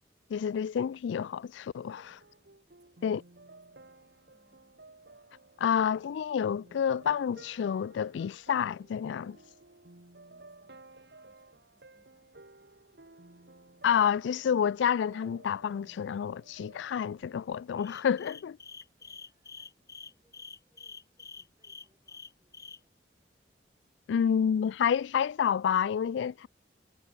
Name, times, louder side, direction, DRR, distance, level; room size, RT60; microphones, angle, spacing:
voice 1, 0.3-2.2 3.0-3.2 5.6-9.4 13.8-18.6 24.1-26.5, left 8 dB, 80° left, 0.3 m, -29 dB
voice 2, 1.8-2.3 2.7-4.9 10.3-12.9 18.7-23.0, right 1 dB, 20° right, 7.1 m, -75 dB
sound 1, 2.0-18.0, right 2 dB, 65° right, 1.9 m, -56 dB
sound 2, 17.8-22.8, left 5 dB, 20° left, 0.6 m, -47 dB
head